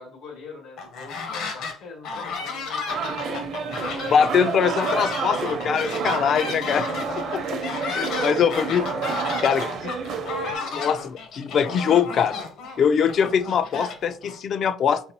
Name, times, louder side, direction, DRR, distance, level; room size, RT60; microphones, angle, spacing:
voice 1, 0.0-4.1 6.8-9.3, left 4 dB, 85° left, 1 dB, 1.4 m, -42 dB
sound 1, 0.8-1.8 2.0-14.4, left 4 dB, 65° left, 0.9 m, -33 dB
sound 2, 2.9-10.5, right 5 dB, 55° right, 0.6 m, -30 dB
voice 2, 4.1-6.9 7.9-8.8 9.4-9.9 10.6-12.3 12.8-15.0, left 7 dB, 45° left, 14 dB, 0.3 m, -22 dB
4.1 x 4.0 x 2.8 m, 0.44 s
cardioid pair, 150°, 0 cm